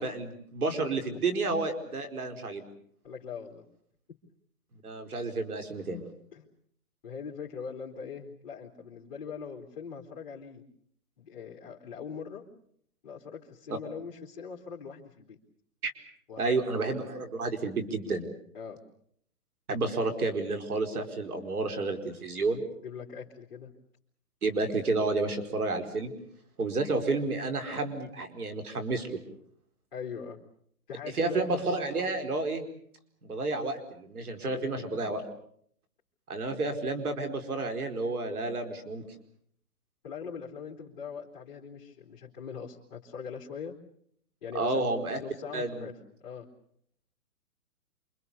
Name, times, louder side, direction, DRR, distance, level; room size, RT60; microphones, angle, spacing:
voice 1, 0.0-2.6 4.8-6.0 13.7-13.8 15.8-15.9 16.4-18.3 19.7-22.6 24.4-26.1 26.6-29.2 31.1-32.6 33.2-35.2 36.3-39.0 44.5-45.2 45.5-45.9, right 3 dB, 75° right, 7 dB, 4.8 m, -30 dB
voice 2, 3.0-3.6 6.3-6.5 7.0-10.6 11.2-12.4 13.0-15.4 16.3-16.6 18.5-18.8 22.8-23.7 29.9-30.4 30.9-31.4 34.4-35.0 40.0-43.7 44.4-44.9 45.2-46.5, left 6 dB, 30° left, -3 dB, 3.1 m, -41 dB
28.5 x 25.5 x 6.9 m, 0.65 s
hypercardioid pair, 175°, 45 cm